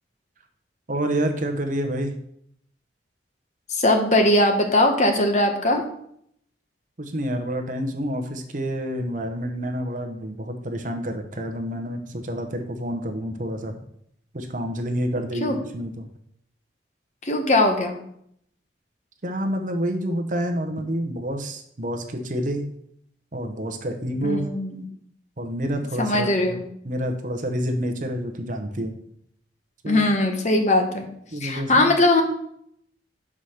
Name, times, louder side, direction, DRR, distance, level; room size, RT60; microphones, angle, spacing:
voice 1, 0.9-2.1 7.0-13.8 14.3-16.1 19.2-22.7 23.3-24.5 25.4-28.9 29.8-30.1 31.3-31.9, equal, 45° right, 5 dB, 0.9 m, -28 dB
voice 2, 3.7-5.8 15.4-15.6 17.2-18.0 24.2-24.8 26.0-26.6 29.9-31.1 31.4-32.2, left 1 dB, 40° left, 4 dB, 1.0 m, -20 dB
6.4 x 4.9 x 5.8 m, 0.70 s
head